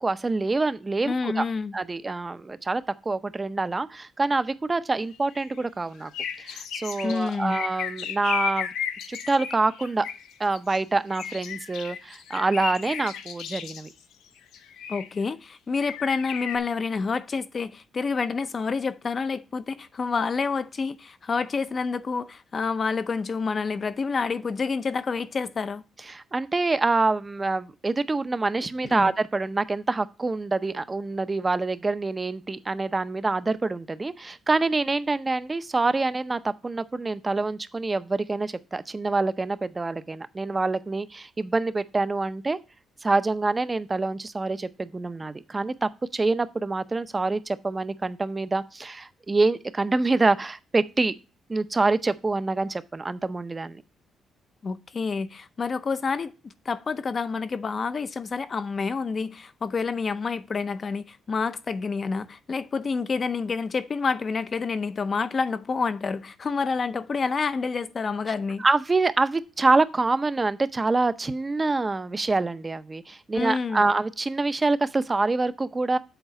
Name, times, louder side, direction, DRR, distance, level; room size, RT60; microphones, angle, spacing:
voice 1, 0.0-1.4 1.7-6.1 6.4-8.7 9.1-10.1 10.4-13.9 26.1-42.6 43.0-51.1 51.5-53.8 68.6-76.0, right 3 dB, 25° right, 0.6 m, -26 dB
voice 2, 1.1-1.7 7.0-7.6 14.9-25.8 28.8-29.1 54.6-68.6 73.3-73.9, left 4 dB, 40° left, 0.6 m, -28 dB
sound 1, 5.1-5.6 6.0-10.8 11.1-13.9 14.5-15.2 15.8-16.6, left 8 dB, 85° left, 0.8 m, -34 dB
8.0 x 4.0 x 5.7 m
cardioid pair, 90°, 0 cm